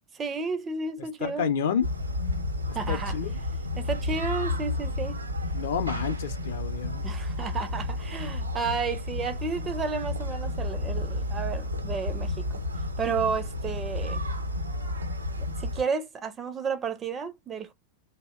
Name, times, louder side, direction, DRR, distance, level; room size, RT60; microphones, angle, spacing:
voice 1, 0.2-1.5 2.7-3.2 3.8-5.2 7.0-12.6 13.0-14.2 15.6-17.7, right 5 dB, 20° right, 0.4 m, -32 dB
voice 2, 1.2-1.9 2.9-3.4 5.5-7.0, left 7 dB, 55° left, 0.5 m, -29 dB
sound 1, 1.8-15.8, left 1 dB, 80° right, 0.6 m, -31 dB
2.7 x 2.0 x 2.3 m
figure-of-eight pair, 90°, 0 cm